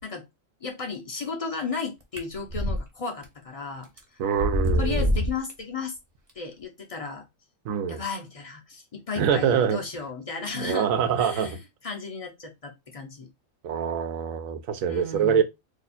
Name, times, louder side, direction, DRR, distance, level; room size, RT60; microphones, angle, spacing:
voice 1, 0.6-3.9 4.8-6.0 6.4-7.3 7.9-10.9 11.2-13.3 14.9-15.4, left 4 dB, 45° left, 0.4 m, -34 dB
sound 1, 2.2-2.8 3.2-3.3 4.0-4.1 4.4-5.5, equal, 30° right, 0.7 m, -24 dB
voice 2, 4.2-5.1 7.6-8.0 9.2-10.1 10.5-11.6 13.6-15.4, right 8 dB, 85° right, 1.0 m, -25 dB
2.7 x 2.3 x 4.2 m
omnidirectional pair, 1.4 m